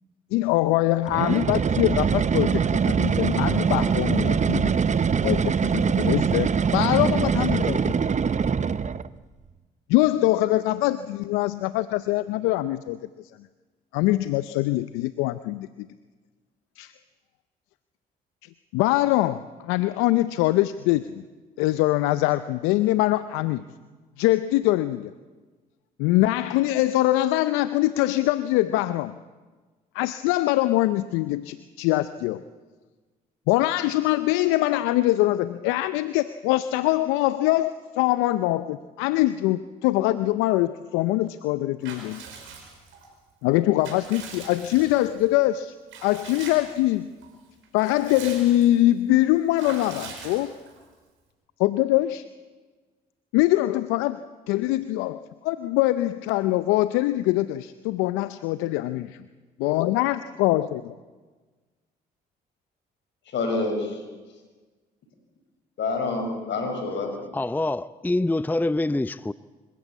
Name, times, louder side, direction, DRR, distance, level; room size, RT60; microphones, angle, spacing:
voice 1, 0.3-4.7 5.2-7.9 9.9-13.0 13.9-15.9 16.8-16.9 18.7-21.2 21.6-23.6 24.2-25.1 26.0-29.1 29.9-32.4 33.5-42.2 43.4-45.7 46.0-47.1 47.7-50.5 51.6-52.2 53.3-59.1 59.6-60.8, left 16 dB, 85° left, 0.6 m, -23 dB
sound 1, 1.1-9.1, right 6 dB, 35° right, 0.9 m, -23 dB
Water / Bathtub (filling or washing) / Liquid, 41.8-43.1 43.5-45.3 45.9-46.9 47.2-47.3 47.6-48.8 49.6-50.8, right 5 dB, 75° right, 5.3 m, -42 dB
voice 2, 63.3-64.0 65.8-67.1, left 3 dB, 65° left, 6.2 m, -27 dB
voice 3, 67.3-69.3, left 2 dB, 10° left, 0.6 m, -25 dB
26.0 x 14.5 x 8.6 m
supercardioid pair, 55°, 20 cm